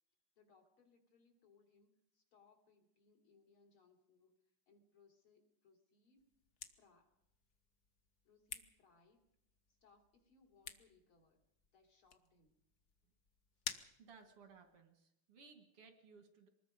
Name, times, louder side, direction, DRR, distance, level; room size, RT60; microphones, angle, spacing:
voice 1, 0.4-4.4 4.7-6.3 6.7-7.2 8.2-9.2 9.8-11.4 11.7-12.6, left 4 dB, 70° left, 2 dB, 4.1 m, -70 dB
sound 1, 6.1-14.8, left 7 dB, 50° left, 1.5 m, -54 dB
voice 2, 14.0-16.5, right 5 dB, 90° right, 6 dB, 3.0 m, -61 dB
24.5 x 20.5 x 5.2 m, 0.79 s
omnidirectional pair, 2.4 m